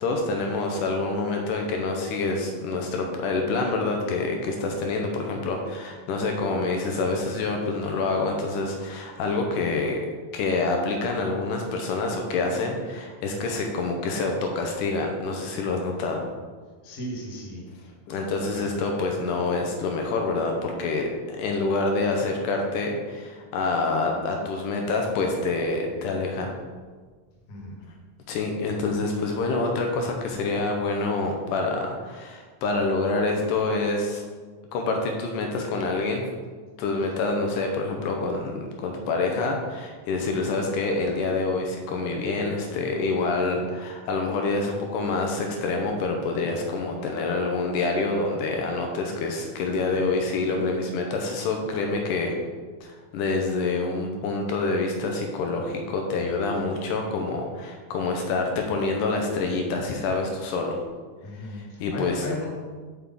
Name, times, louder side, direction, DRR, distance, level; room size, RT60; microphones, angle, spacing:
voice 1, 0.0-10.0 10.3-16.3 18.1-26.5 28.3-34.2 34.7-36.3 36.8-52.3 52.8-60.8 61.8-62.2, left 3 dB, 80° left, 2 dB, 2.2 m, -27 dB
voice 2, 16.8-17.6 18.6-18.8 27.5-27.7 61.2-62.5, left 1 dB, 40° left, -3 dB, 1.2 m, -35 dB
7.4 x 6.0 x 3.7 m, 1.5 s
omnidirectional pair, 3.8 m